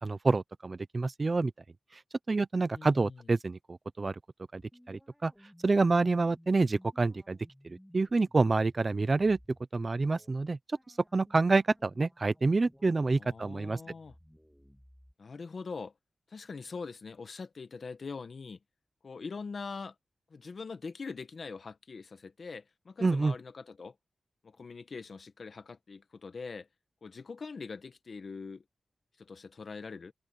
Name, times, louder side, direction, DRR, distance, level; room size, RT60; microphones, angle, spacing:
voice 1, 0.0-1.5 2.3-4.2 4.5-4.6 4.9-5.3 5.6-7.4 7.6-9.4 9.7-10.6 11.1-13.8 23.0-23.3, right 3 dB, 35° right, 0.7 m, -27 dB
voice 2, 2.7-3.2 13.2-14.1 15.2-15.9 16.3-18.6 19.0-19.9 20.3-23.9 24.4-26.7 27.0-28.6 29.2-30.1, left 4 dB, 55° left, 1.4 m, -43 dB
sound 1, 4.6-9.7 10.0-10.3 10.7-15.1, equal, 5° left, 2.7 m, -59 dB
open air
wide cardioid pair, 125°, 0 cm